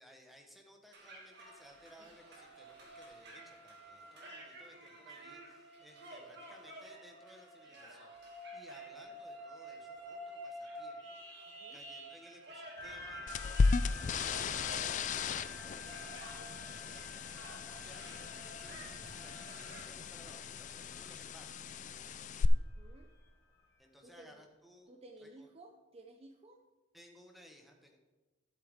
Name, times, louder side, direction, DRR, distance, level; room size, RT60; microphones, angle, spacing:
voice 1, 0.0-8.2 8.5-21.6 23.8-24.9 25.2-25.5 26.9-28.0, equal, ahead, 2 dB, 1.2 m, -60 dB
sound 1, 0.9-19.8, right 1 dB, 60° right, 2.3 m, -50 dB
voice 2, 11.5-11.8 22.5-23.1 24.0-24.4 24.9-26.6, right 1 dB, 30° right, 4 dB, 0.6 m, -56 dB
sound 2, 12.8-23.6, left 4 dB, 15° left, 2.1 m, -52 dB
sound 3, 13.3-22.4, left 4 dB, 40° left, 0.3 m, -36 dB
12.5 x 7.7 x 3.6 m, 1.2 s
head